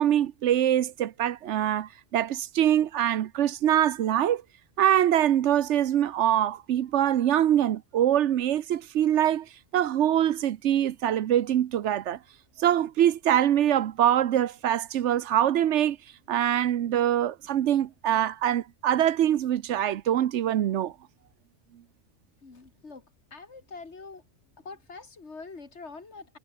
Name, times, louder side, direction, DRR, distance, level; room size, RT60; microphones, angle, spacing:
voice 1, 0.0-4.4 4.8-12.2 12.6-16.0 16.3-20.9, right 11 dB, 85° right, 1.0 m, -24 dB
voice 2, 22.4-23.0 23.3-24.2 24.6-26.4, left 4 dB, 75° left, 2.8 m, -44 dB
omnidirectional pair, 1.2 m